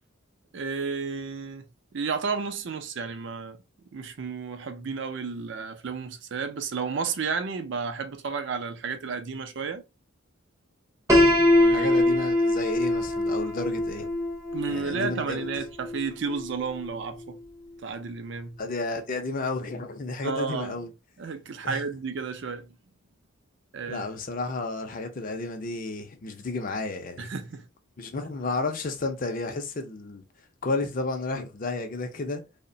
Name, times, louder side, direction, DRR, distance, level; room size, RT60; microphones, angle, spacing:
voice 1, 0.5-3.6 3.9-9.8 11.5-12.2 14.5-17.4 17.8-18.6 20.2-20.8 21.2-22.7 23.7-24.0 27.2-27.7, right 5 dB, 60° right, 0.5 m, -32 dB
Piano, 11.1-17.0, left 1 dB, 15° right, 0.6 m, -23 dB
voice 2, 11.7-14.1 14.7-15.5 18.6-20.9 21.6-21.8 23.9-27.3 28.0-30.2 30.6-32.4, left 3 dB, 40° left, 0.5 m, -32 dB
2.8 x 2.1 x 2.6 m
head